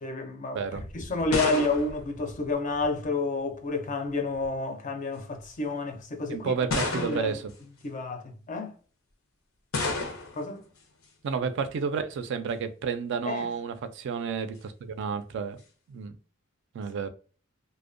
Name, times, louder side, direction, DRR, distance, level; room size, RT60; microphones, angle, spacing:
voice 1, 0.0-6.5 6.9-7.4 7.8-8.7 10.3-10.6 13.3-13.5, left 3 dB, 40° left, 0.4 m, -30 dB
sound 1, 0.7-3.1 4.1-4.5 5.4-5.5 6.7-7.5 9.7-10.5, left 3 dB, 90° left, 0.6 m, -32 dB
voice 2, 6.3-7.5 11.2-15.6 15.9-16.2 16.7-17.1, right 6 dB, 60° right, 0.3 m, -31 dB
2.5 x 2.1 x 2.4 m
head